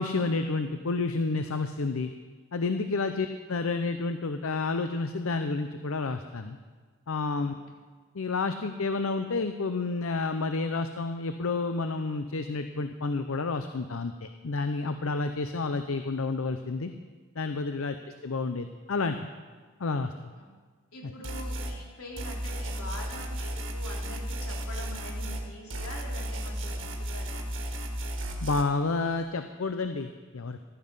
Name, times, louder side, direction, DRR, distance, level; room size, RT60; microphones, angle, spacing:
voice 1, 0.0-2.1 2.5-6.6 7.1-7.5 8.1-16.9 17.4-18.0 18.2-19.3 19.8-20.1 21.0-21.1 28.4-30.6, left 3 dB, 75° left, 8 dB, 0.6 m, -30 dB
voice 2, 20.9-27.5, left 1 dB, 90° left, -2 dB, 3.7 m, -44 dB
sound 1, 21.2-21.8 22.2-25.4 25.7-28.6, right 1 dB, 60° right, 1.8 m, -34 dB
14.5 x 12.5 x 5.5 m, 1.4 s
head